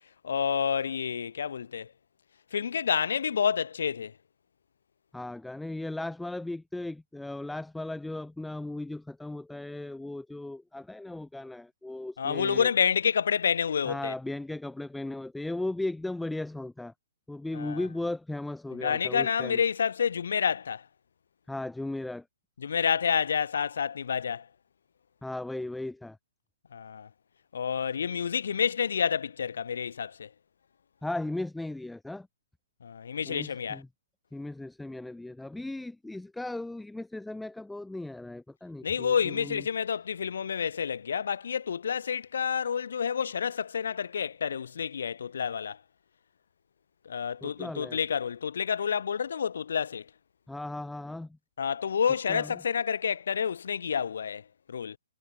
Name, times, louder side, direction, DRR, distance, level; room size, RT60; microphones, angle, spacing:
voice 1, 0.2-1.9 2.5-4.1 12.2-14.1 17.5-17.8 18.7-20.9 22.6-24.5 26.7-27.1 27.5-30.3 32.8-33.8 38.8-45.8 47.0-50.1 51.6-55.0, left 7 dB, 65° left, 1.4 m, -29 dB
voice 2, 5.1-12.7 13.9-16.9 17.3-19.6 21.5-22.2 25.2-26.2 31.0-32.3 33.3-33.9 34.3-39.6 47.4-48.0 50.5-51.3 52.3-52.5, left 2 dB, 5° left, 3.7 m, -36 dB
hypercardioid pair, 135°, 0 cm